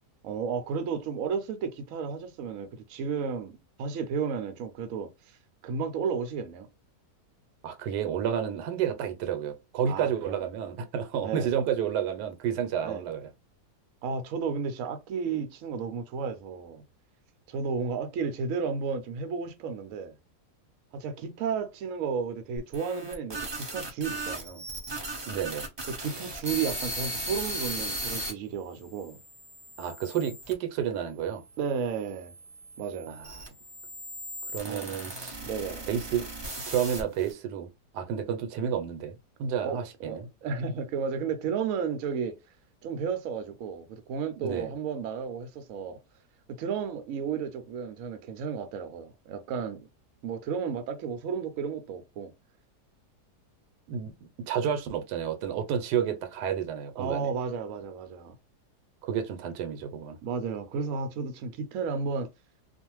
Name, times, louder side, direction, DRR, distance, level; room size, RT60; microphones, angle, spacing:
voice 1, 0.2-5.4 5.6-6.7 9.9-10.4 11.2-11.5 12.8-13.1 14.0-16.8 17.5-20.1 20.9-24.7 25.9-29.2 31.6-32.3 32.8-33.1 34.6-35.0 35.4-35.9 39.6-42.4 42.8-46.0 46.5-49.9 50.2-52.3 57.0-58.4 60.2-62.3, right 6 dB, 65° right, 0.9 m, -33 dB
voice 2, 7.6-13.3 25.3-25.6 29.8-31.4 33.1-33.3 34.4-35.4 35.9-36.3 36.7-37.7 37.9-40.3 44.4-44.7 53.9-54.1 54.5-57.3 59.0-60.2, right 8 dB, 85° right, 1.2 m, -30 dB
sound 1, 22.6-28.3 29.0-30.5 31.3-37.3, right 1 dB, 35° right, 0.4 m, -37 dB
2.5 x 2.4 x 3.0 m
omnidirectional pair, 1.8 m